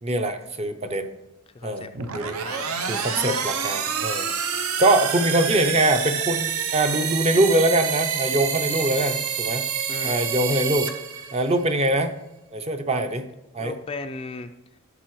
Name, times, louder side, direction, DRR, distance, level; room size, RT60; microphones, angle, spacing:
voice 1, 0.0-1.1 1.6-2.4 2.9-4.3 4.8-9.6 10.0-10.9 11.3-12.1 12.5-13.2 13.5-13.8, right 1 dB, 30° right, 7 dB, 0.5 m, -23 dB
voice 2, 1.5-2.8 9.9-10.2 13.6-14.5, left 3 dB, 25° left, 7 dB, 0.3 m, -36 dB
sound 1, 1.9-11.7, right 7 dB, 75° right, 0.7 m, -28 dB
13.0 x 6.8 x 3.1 m, 0.93 s
head